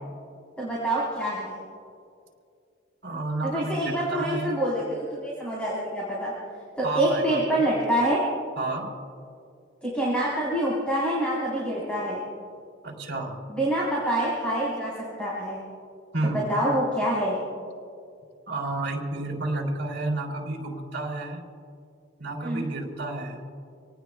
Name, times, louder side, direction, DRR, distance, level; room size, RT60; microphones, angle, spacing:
voice 1, 0.6-1.5 3.4-6.3 6.8-8.2 9.8-12.2 13.5-14.9 15.2-15.6 16.2-17.4 22.4-22.7, right 1 dB, 5° left, -7 dB, 4.0 m, -26 dB
voice 2, 3.0-4.6 6.8-7.6 8.6-8.9 12.8-13.4 16.1-16.5 18.5-21.4 22.2-23.4, right 2 dB, 60° right, 0 dB, 3.4 m, -31 dB
26.5 x 18.5 x 2.4 m, 2.4 s
head